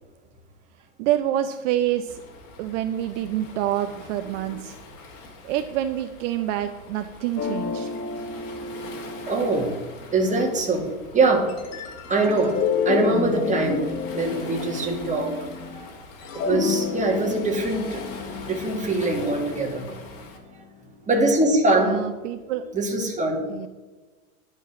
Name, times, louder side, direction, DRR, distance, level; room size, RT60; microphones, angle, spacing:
voice 1, 1.0-2.2 2.6-4.8 5.4-7.9 21.8-22.6 23.5-23.7, right 12 dB, 55° right, 9 dB, 0.8 m, -27 dB
Waves surf, 2.1-20.4, left 3 dB, 60° left, 2.8 m, -43 dB
sound 1, 7.4-10.5 11.5-15.8 16.1-20.3, left 6 dB, 35° left, 1.4 m, -31 dB
voice 2, 9.2-9.8 10.1-11.5 11.9-15.3 15.7-15.9 16.3-18.0 18.4-19.8 21.1-22.0 22.7-23.5, right 2 dB, 15° right, 1 dB, 2.4 m, -23 dB
11.0 x 5.5 x 7.5 m, 1.2 s
hypercardioid pair, 110°, 43 cm